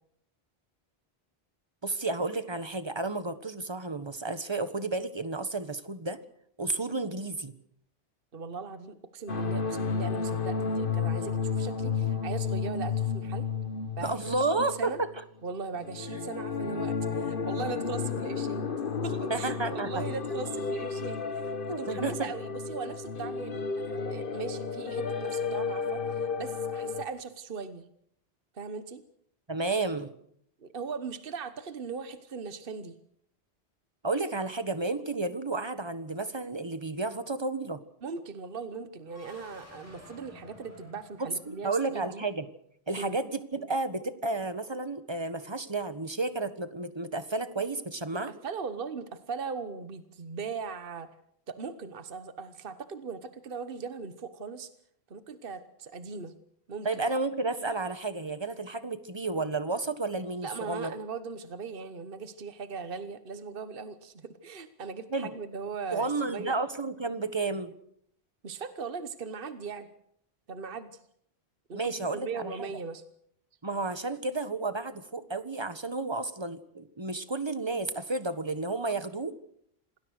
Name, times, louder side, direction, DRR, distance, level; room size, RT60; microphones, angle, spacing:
voice 1, 1.8-6.2 6.6-7.5 14.0-15.1 19.3-19.9 21.7-22.3 29.5-30.1 34.0-37.8 41.2-42.4 42.9-48.3 56.8-60.9 65.1-65.3 65.9-67.7 71.7-72.7 73.6-79.3, right 3 dB, 25° right, 11 dB, 1.5 m, -32 dB
voice 2, 8.3-13.5 13.9-15.0 15.4-18.6 19.0-27.8 28.5-29.0 30.6-32.9 38.0-42.2 43.0-43.2 48.1-51.1 51.5-54.7 55.1-56.3 56.7-56.9 60.4-66.6 68.4-69.9 70.5-71.0 71.7-73.0, right 5 dB, 60° right, 11 dB, 1.3 m, -39 dB
sound 1, 9.3-15.2 15.8-27.0, left 5 dB, 55° left, 1.5 m, -32 dB
sound 2, 39.0-42.0, left 1 dB, 15° left, 8.1 m, -53 dB
27.0 x 19.5 x 6.5 m, 0.70 s
omnidirectional pair, 1.1 m